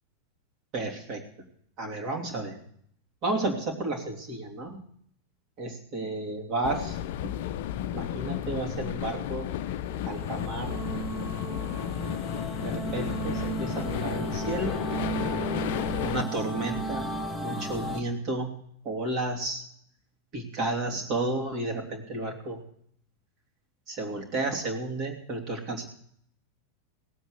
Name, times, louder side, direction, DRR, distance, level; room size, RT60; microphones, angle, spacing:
voice 1, 0.7-1.2 1.8-2.6 3.2-4.8 5.6-7.3 7.9-9.5 10.1-10.7 12.6-14.8 16.0-17.1 17.4-18.5 18.8-19.6 20.3-22.6 23.9-25.9, right 2 dB, 35° right, 1 dB, 2.9 m, -32 dB
sound 1, 6.6-16.2, left 11 dB, 50° left, 0.6 m, -33 dB
sound 2, 9.7-18.0, right 3 dB, 5° right, 2.1 m, -34 dB
18.0 x 8.0 x 6.5 m, 0.66 s
figure-of-eight pair, 90°, 0 cm